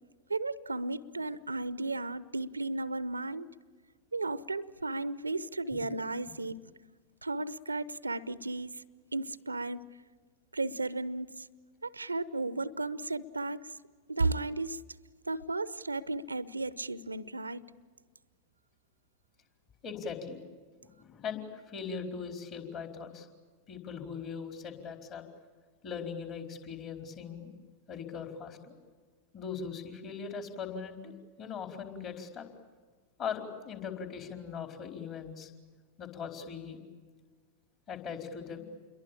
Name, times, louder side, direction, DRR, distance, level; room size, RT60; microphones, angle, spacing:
voice 1, 0.3-3.5 4.1-6.6 7.2-8.8 9.1-9.8 10.5-11.5 11.8-13.6 14.1-14.8 15.3-17.6, right 2 dB, 80° right, 18 dB, 0.8 m, -34 dB
voice 2, 19.8-20.4 20.8-23.3 23.7-25.2 25.8-27.5 27.9-28.8 29.3-32.4 33.2-35.5 36.0-36.8 37.9-38.7, left 6 dB, 35° left, 4 dB, 4.5 m, -40 dB
29.0 x 22.5 x 8.7 m, 1.5 s
figure-of-eight pair, 90°, 0 cm